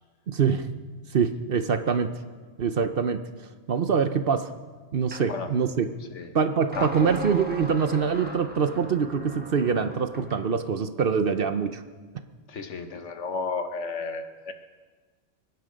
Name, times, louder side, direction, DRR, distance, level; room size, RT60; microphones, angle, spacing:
voice 1, 0.3-0.7 1.1-2.1 2.6-3.2 3.7-4.5 4.9-5.9 6.3-11.8, right 6 dB, 55° right, 9 dB, 0.9 m, -24 dB
sound 1, 5.1-5.3 6.7-10.5, equal, 10° right, 1.4 m, -37 dB
voice 2, 12.5-14.5, left 4 dB, 75° left, 7 dB, 1.5 m, -32 dB
23.5 x 10.5 x 5.2 m, 1.4 s
omnidirectional pair, 1.3 m